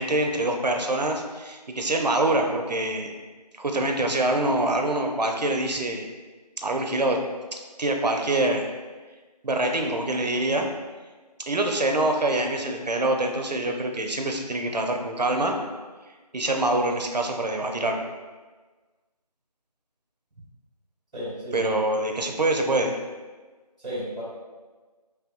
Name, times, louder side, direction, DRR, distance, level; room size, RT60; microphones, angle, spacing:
voice 1, 0.0-3.1 3.6-6.1 6.6-7.2 7.8-8.7 9.4-10.7 11.5-15.6 16.3-18.0 21.5-23.0, right 2 dB, 80° right, 3 dB, 0.6 m, -25 dB
voice 2, 21.1-21.7 23.8-24.2, equal, 10° right, -17 dB, 1.3 m, -33 dB
3.4 x 3.0 x 2.5 m, 1.3 s
figure-of-eight pair, 165°, 21 cm